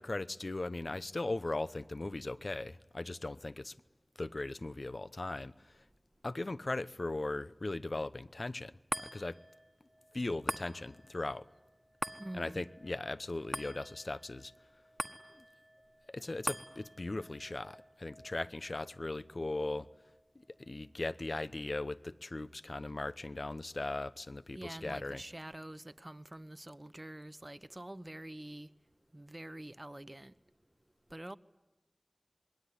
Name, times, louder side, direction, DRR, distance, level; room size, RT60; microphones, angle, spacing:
voice 1, 0.0-3.7 4.2-5.8 6.2-9.4 10.1-11.4 12.3-14.5 16.1-19.9 20.3-25.2, left 2 dB, 70° left, 0.9 m, -38 dB
sound 1, 8.9-21.5 21.9-22.0, equal, 15° right, 1.5 m, -45 dB
voice 2, 12.2-12.6 24.5-28.7 29.1-30.3 31.1-31.4, right 1 dB, 35° right, 1.1 m, -46 dB
27.0 x 21.5 x 9.9 m
wide cardioid pair, 50°, 0 cm